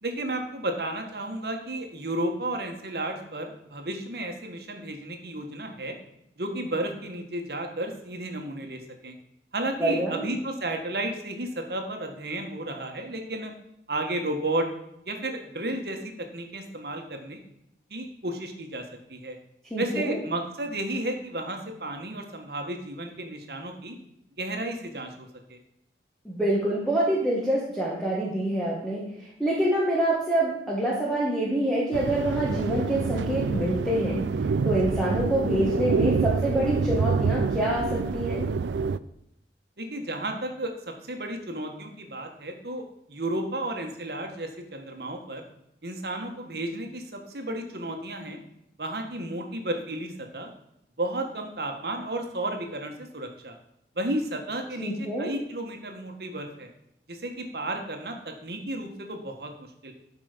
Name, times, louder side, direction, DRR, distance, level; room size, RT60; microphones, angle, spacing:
voice 1, 0.0-6.0 6.4-9.1 9.5-13.5 13.9-14.7 15.0-17.4 17.9-18.8 19.1-19.4 19.8-24.0 24.4-25.6 39.8-45.4 45.8-48.4 48.8-50.5 51.0-53.6 53.9-56.7 57.1-59.9, right 1 dB, 60° right, 3 dB, 1.5 m, -33 dB
voice 2, 9.8-10.2 19.7-20.2 26.2-34.2 34.6-38.5 54.8-55.3, right 1 dB, ahead, -6 dB, 1.6 m, -26 dB
sound 1, 31.9-39.0, right 4 dB, 90° right, 0.4 m, -27 dB
12.5 x 5.3 x 5.1 m, 0.80 s
head